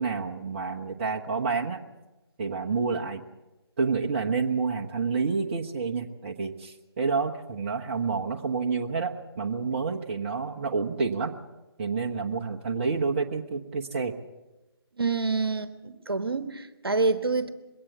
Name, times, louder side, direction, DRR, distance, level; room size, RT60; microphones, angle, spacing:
voice 1, 0.0-1.8 2.4-3.2 3.8-11.4 11.8-14.1, right 4 dB, 30° right, 1 dB, 1.2 m, -29 dB
voice 2, 15.0-17.5, right 3 dB, 65° right, 11 dB, 1.3 m, -27 dB
21.5 x 17.5 x 7.1 m, 1.0 s
figure-of-eight pair, 145°, 13 cm